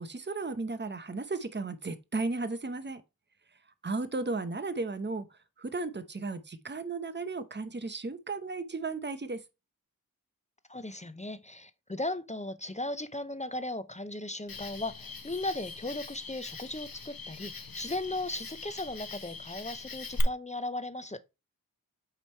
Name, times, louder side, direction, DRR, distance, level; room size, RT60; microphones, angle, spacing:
voice 1, 0.0-3.0 3.8-9.4, right 3 dB, 30° right, 0.8 m, -35 dB
voice 2, 10.7-21.2, left 2 dB, 20° left, 0.6 m, -37 dB
Cricket, 14.5-20.2, left 4 dB, 70° left, 1.1 m, -41 dB
8.4 x 3.3 x 4.4 m
wide cardioid pair, 50°, 36 cm